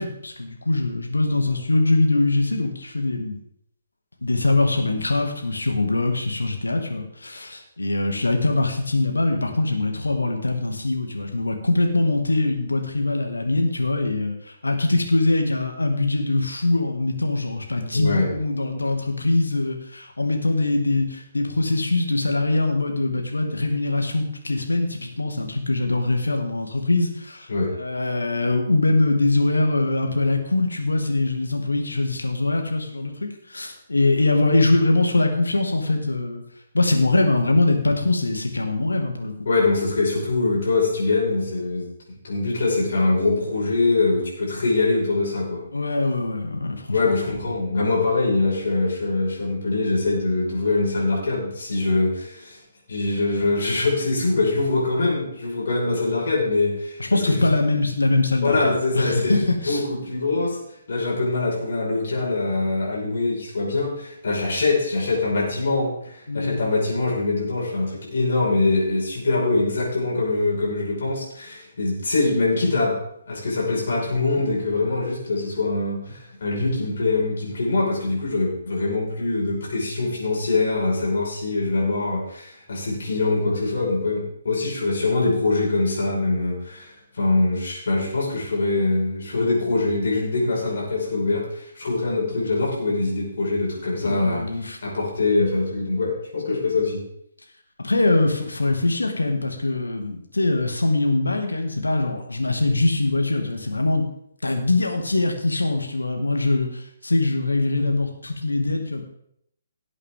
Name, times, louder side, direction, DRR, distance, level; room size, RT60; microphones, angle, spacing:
voice 1, 0.0-3.4 4.2-14.3 14.6-27.5 27.8-36.4 36.7-39.3 45.7-46.8 57.0-59.8 66.3-66.6 94.0-94.8 97.8-104.1 104.4-109.0, left 2 dB, 75° left, 4 dB, 2.1 m, -22 dB
voice 2, 17.9-18.3 27.5-27.7 39.5-41.9 42.2-45.6 46.9-52.6 52.9-57.0 57.3-57.5 58.4-60.6 60.9-72.9 73.3-94.4 94.8-97.0, left 3 dB, 55° left, -3 dB, 5.4 m, -23 dB
17.5 x 8.2 x 3.7 m, 0.73 s
figure-of-eight pair, 135°, 0 cm